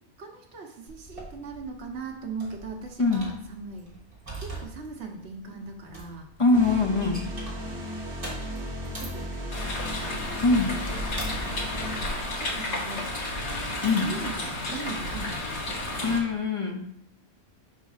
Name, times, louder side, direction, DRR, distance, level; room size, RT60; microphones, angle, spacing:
voice 1, 0.2-3.9 4.4-6.3 7.0-7.9 9.0-10.2 10.8-10.9 12.0-13.1 13.7-16.2, right 4 dB, 75° right, 2 dB, 1.3 m, -40 dB
sound 1, 0.9-15.9, right 2 dB, 30° right, 1.7 m, -45 dB
voice 2, 6.4-7.3 10.4-10.7 13.8-14.1 16.0-16.8, left 3 dB, 35° left, 3 dB, 0.5 m, -23 dB
sound 2, 6.5-13.0, equal, 10° left, 2.3 m, -36 dB
sound 3, 9.5-16.2, left 2 dB, 75° left, 1.4 m, -32 dB
5.0 x 4.0 x 5.5 m, 0.70 s
omnidirectional pair, 1.1 m